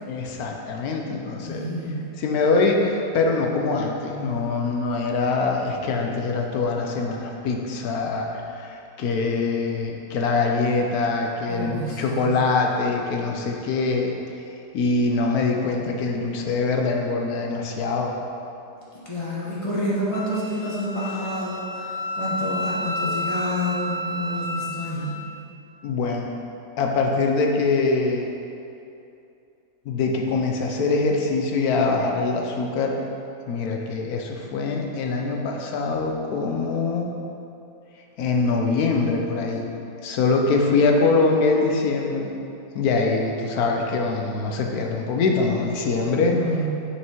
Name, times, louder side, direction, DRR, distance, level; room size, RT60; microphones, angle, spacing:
voice 1, 0.1-1.6 2.2-14.1 14.7-18.1 25.8-26.3 26.8-28.3 29.9-33.0 33.5-37.1 38.2-39.6 40.0-42.3 42.7-46.4, left 3 dB, 60° left, 1 dB, 1.1 m, -23 dB
voice 2, 1.4-2.2 11.5-12.3 19.0-21.9 22.1-25.2 46.3-46.7, equal, 20° left, -8 dB, 1.5 m, -28 dB
Wind instrument woodwind instrument, 20.1-25.3, left 1 dB, 85° left, 0.6 m, -31 dB
6.5 x 5.9 x 4.5 m, 2.7 s
omnidirectional pair, 2.0 m